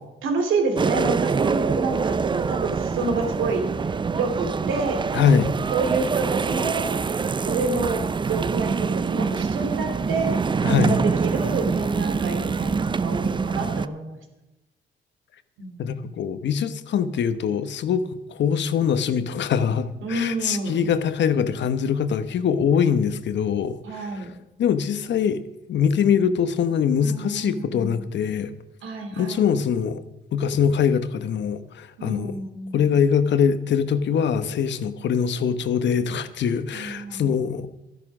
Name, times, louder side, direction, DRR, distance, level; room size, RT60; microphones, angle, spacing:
voice 1, 0.2-5.2 5.7-6.9 7.5-10.3 10.7-14.2 15.6-16.0 20.0-20.9 23.8-24.3 27.0-28.0 28.8-29.5 32.0-32.9 36.7-37.4, right 3 dB, 80° right, 5 dB, 2.7 m, -28 dB
sound 1, 0.8-13.9, right 5 dB, 25° right, 0.4 m, -25 dB
voice 2, 5.1-5.5 10.6-11.0 15.8-24.3 24.6-25.4 25.7-28.5 29.2-30.0 30.3-32.3 32.7-37.7, left 7 dB, 65° left, 12 dB, 1.1 m, -23 dB
12.5 x 11.0 x 6.2 m, 0.96 s
cardioid pair, 90°, 20 cm